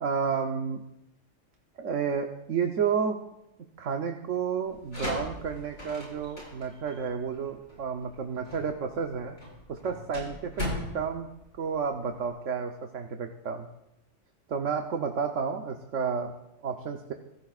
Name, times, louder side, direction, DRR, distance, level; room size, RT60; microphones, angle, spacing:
voice 1, 0.0-0.8 1.8-3.2 3.8-9.4 9.7-10.7 10.9-11.3 11.6-13.7 14.5-16.3 16.6-17.1, right 6 dB, 90° right, 4 dB, 1.3 m, -31 dB
sound 1, 4.7-12.3, left 1 dB, 75° left, 8.1 m, -39 dB
25.0 x 17.0 x 2.4 m, 0.86 s
omnidirectional pair, 1.2 m